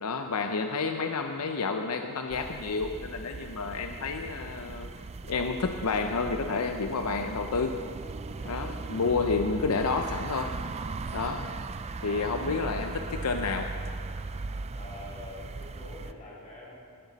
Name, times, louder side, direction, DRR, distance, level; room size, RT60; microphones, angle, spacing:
voice 1, 0.0-4.9 5.2-7.8 8.5-10.5 11.1-11.4 12.0-13.7, left 4 dB, 80° left, 5 dB, 0.7 m, -30 dB
sound 1, 2.3-16.1, right 3 dB, 30° right, 0.4 m, -38 dB
voice 2, 14.7-16.8, left 2 dB, 35° left, -6 dB, 3.6 m, -46 dB
18.0 x 12.0 x 4.1 m, 2.3 s
head